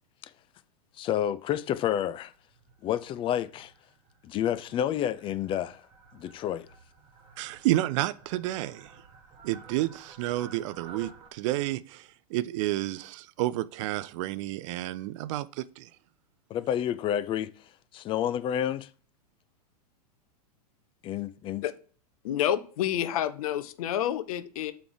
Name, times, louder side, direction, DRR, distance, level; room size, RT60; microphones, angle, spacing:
voice 1, 1.0-2.3 2.8-3.7 4.2-5.8 6.1-6.7 16.5-17.5 17.9-18.9 21.0-21.6, left 10 dB, 25° left, 0.4 m, -29 dB
Fowl, 2.1-11.3, right 5 dB, 25° right, 1.6 m, -53 dB
voice 2, 7.4-8.9 9.4-15.9, right 16 dB, 50° right, 0.4 m, -30 dB
voice 3, 22.2-24.7, left 11 dB, 60° left, 0.7 m, -29 dB
6.9 x 3.4 x 4.8 m
hypercardioid pair, 100°, 21 cm